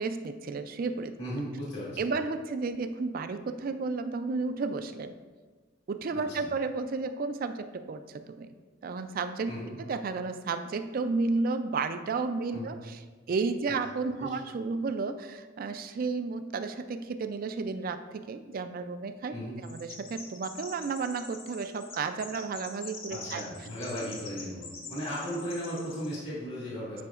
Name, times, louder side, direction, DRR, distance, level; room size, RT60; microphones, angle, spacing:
voice 1, 0.0-1.1 2.0-5.2 5.9-8.5 8.8-9.5 9.8-13.0 13.3-19.3 19.6-23.4, right 4 dB, 45° right, 9 dB, 0.3 m, -32 dB
voice 2, 1.2-2.1 6.1-6.5 9.5-9.7 12.5-12.7 14.2-14.3 19.3-19.6 23.1-27.0, equal, 65° left, -7 dB, 1.9 m, -36 dB
Chirp tweet, 19.6-26.2, left 4 dB, 45° left, 1.0 m, -45 dB
9.4 x 5.1 x 2.4 m, 1.4 s
head